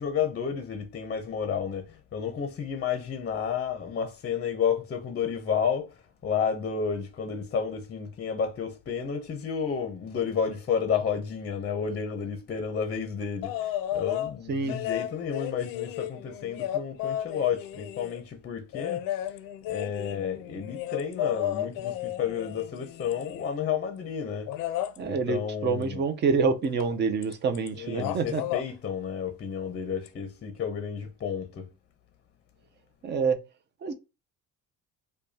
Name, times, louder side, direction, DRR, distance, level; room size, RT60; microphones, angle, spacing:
voice 1, 0.0-19.0 19.6-24.7 25.0-26.0 27.7-31.7, left 7 dB, 30° left, 0.6 m, -31 dB
sound 1, 13.4-14.3 14.7-18.2 18.7-23.6 24.5-25.0 26.8-26.9 27.2-27.7 27.9-28.7 30.1-30.2, left 12 dB, 85° left, 0.6 m, -33 dB
voice 2, 25.0-28.4 33.0-33.4 33.8-33.9, right 5 dB, 30° right, 0.6 m, -27 dB
4.9 x 2.2 x 2.7 m
cardioid pair, 160°, 33 cm